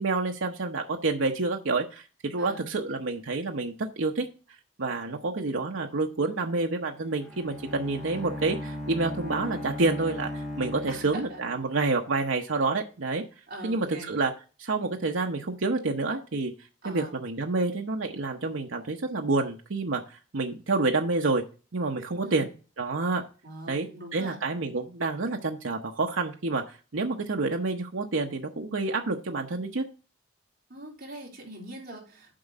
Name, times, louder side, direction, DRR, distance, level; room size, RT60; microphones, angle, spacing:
voice 1, 0.0-4.3 4.8-13.2 13.6-14.3 14.6-16.5 16.8-21.4 21.7-22.5 22.8-23.2 23.7-23.9 24.1-29.9, right 3 dB, 80° right, 2 dB, 0.9 m, -28 dB
Bowed string instrument, 7.0-11.7, left 1 dB, ahead, 1.9 m, -37 dB
voice 2, 10.9-11.4 13.5-14.1 16.8-17.2 22.2-22.5 23.4-24.4 30.7-32.4, right 1 dB, 50° right, -2 dB, 3.5 m, -42 dB
7.6 x 4.9 x 6.5 m, 0.35 s
head